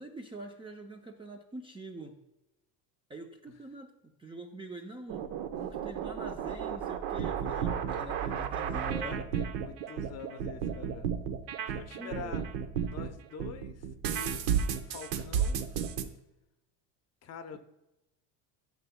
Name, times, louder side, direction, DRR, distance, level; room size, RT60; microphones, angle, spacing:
voice 1, 0.0-2.2 3.1-5.2 5.6-9.2 12.0-12.4, right 2 dB, 10° right, 3 dB, 0.5 m, -45 dB
sound 1, 5.1-13.1 13.4-16.0, right 8 dB, 70° right, 0.9 m, -32 dB
voice 2, 9.0-11.1 11.7-12.4 12.8-13.9 14.1-14.4 14.9-15.6 17.2-17.6, left 6 dB, 35° left, 8 dB, 0.7 m, -45 dB
12.5 x 6.8 x 2.2 m, 0.92 s
cardioid pair, 130°, 43 cm